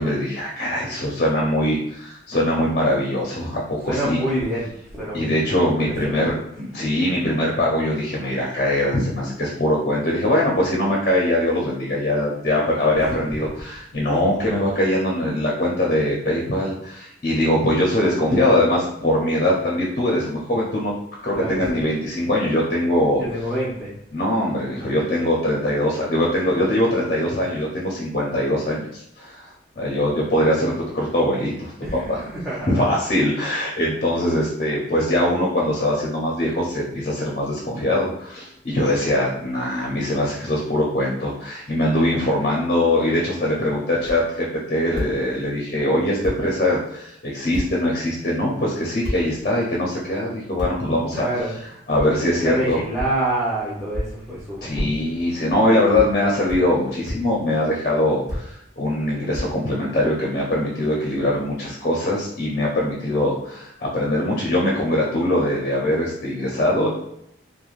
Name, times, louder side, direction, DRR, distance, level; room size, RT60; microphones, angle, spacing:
voice 1, 0.0-4.2 5.1-20.9 21.2-23.2 24.1-31.7 32.1-32.3 32.7-51.3 51.9-52.8 54.6-66.9, left 1 dB, 40° left, -3 dB, 0.6 m, -22 dB
voice 2, 3.9-4.7 4.9-5.5 6.0-6.2 13.0-13.4 21.3-21.8 23.2-23.9 31.8-32.9 51.1-51.5 52.4-54.8, right 1 dB, ahead, -9 dB, 0.6 m, -27 dB
sound 1, 44.0-44.2 44.9-45.1 45.9-46.0 46.2-46.4 47.5-47.7 49.0-49.2 50.6-50.7 51.9-52.1 53.0-53.1 53.9-54.1 55.2-55.6 55.9-56.1 56.5-56.6 57.0-57.2 58.3-58.4 59.3-60.0, equal, 70° right, 1.1 m, -29 dB
3.2 x 2.1 x 2.4 m, 0.76 s
head